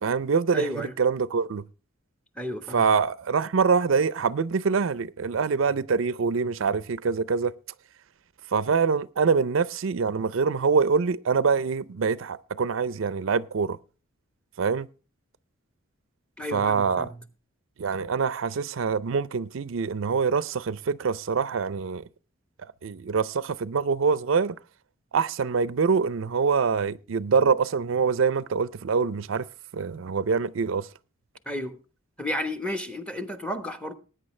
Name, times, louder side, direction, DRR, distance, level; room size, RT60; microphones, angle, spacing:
voice 1, 0.0-1.7 2.7-7.5 8.5-13.8 14.6-14.9 16.5-17.1 17.8-22.0 22.8-24.6 25.1-29.5 29.7-30.9, right 5 dB, 70° right, 0.5 m, -25 dB
voice 2, 0.5-0.9 2.4-2.8 16.4-17.2 31.5-31.8 32.2-33.9, left 1 dB, 5° left, 1.1 m, -32 dB
19.5 x 9.2 x 3.2 m
head